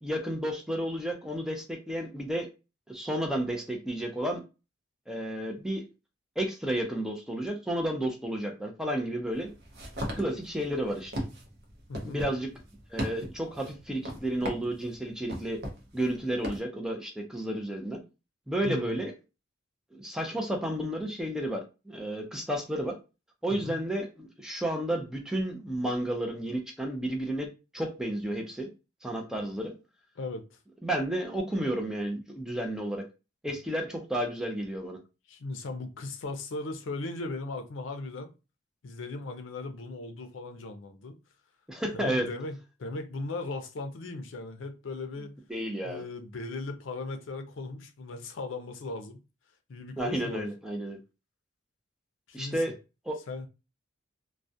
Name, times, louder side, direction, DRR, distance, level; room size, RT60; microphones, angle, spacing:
voice 1, 0.0-2.5 2.9-4.4 5.1-5.8 6.4-9.5 10.2-11.2 12.0-12.5 12.9-15.6 15.9-18.0 18.5-19.1 19.9-23.0 23.4-27.5 27.7-28.7 29.0-29.8 30.8-33.0 33.4-35.0 41.7-42.3 45.5-46.0 50.0-51.0 52.3-52.7 53.1-53.2, right 1 dB, 5° right, 0.4 m, -32 dB
sound 1, 9.3-16.6, equal, 55° right, 0.6 m, -38 dB
voice 2, 11.9-12.2 18.6-19.0 23.5-23.8 30.2-30.6 35.3-38.3 38.8-41.2 41.9-45.4 45.8-49.2 49.7-50.5 52.3-52.6 53.3-53.5, left 3 dB, 75° left, 0.5 m, -38 dB
2.3 x 2.1 x 2.6 m
head